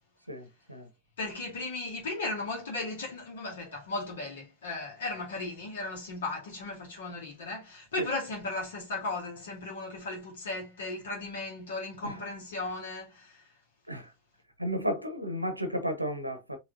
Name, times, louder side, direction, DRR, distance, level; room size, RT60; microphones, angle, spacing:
voice 1, 0.3-0.9 8.0-8.1 12.0-12.2 13.9-14.1 14.6-16.6, equal, 90° right, 0.8 m, -33 dB
voice 2, 1.2-13.5, left 2 dB, 60° left, 2.1 m, -36 dB
4.9 x 3.2 x 2.7 m
figure-of-eight pair, 90°, 0 cm